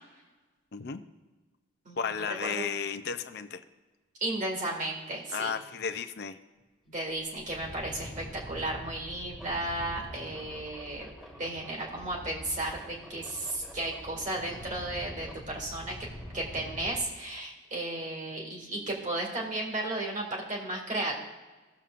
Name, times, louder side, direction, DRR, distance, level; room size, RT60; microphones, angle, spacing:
voice 1, 0.7-1.0 2.0-3.6 5.3-6.4, left 6 dB, 50° left, 8 dB, 0.5 m, -33 dB
voice 2, 2.3-2.7 4.2-5.5 6.9-11.1 11.4-16.0 16.3-21.2, right 2 dB, 35° right, 0 dB, 2.0 m, -34 dB
sound 1, 6.6-6.7 7.1-17.0, left 1 dB, 5° right, 1.5 m, -45 dB
16.5 x 7.1 x 2.5 m, 1.3 s
head